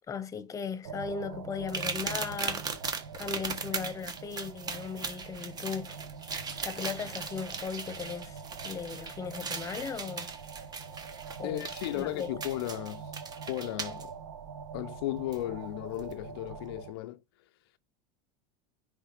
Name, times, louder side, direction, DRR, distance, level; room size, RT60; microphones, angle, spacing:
voice 1, 0.1-2.7 3.2-6.0 6.6-8.4 8.6-10.3 11.4-11.7 11.9-12.3, left 6 dB, 25° left, 1.0 m, -37 dB
sound 1, 0.8-16.9, right 6 dB, 85° right, 0.9 m, -44 dB
sound 2, 1.7-14.0 15.3-15.4 16.0-16.1, right 5 dB, 30° right, 1.4 m, -38 dB
voice 2, 11.4-13.1 13.5-14.1 14.7-17.2, left 15 dB, 70° left, 0.5 m, -35 dB
10.0 x 3.3 x 3.3 m
hypercardioid pair, 90°, 13 cm